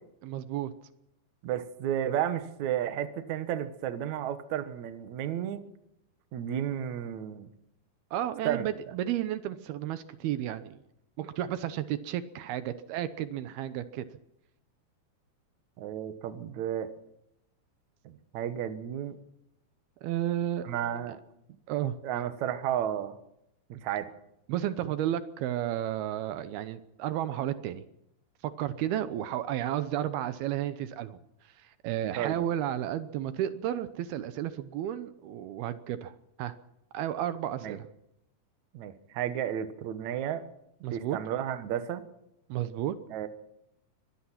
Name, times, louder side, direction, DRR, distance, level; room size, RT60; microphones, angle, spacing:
voice 1, 0.2-0.7 8.1-10.8 11.2-14.1 20.0-20.6 21.7-22.0 24.5-27.8 28.4-31.2 31.4-36.5 36.9-37.9 40.8-41.2 42.5-43.0, right 12 dB, 75° right, 12 dB, 2.8 m, -32 dB
voice 2, 1.4-5.6 6.3-7.5 8.4-8.7 15.8-16.9 18.0-19.1 20.6-21.2 22.0-23.2 23.8-24.1 32.2-32.4 37.6-37.8 38.7-40.5 40.9-42.1 43.1-43.3, right 10 dB, 60° right, 10 dB, 2.3 m, -32 dB
24.0 x 18.5 x 5.9 m, 0.82 s
omnidirectional pair, 4.6 m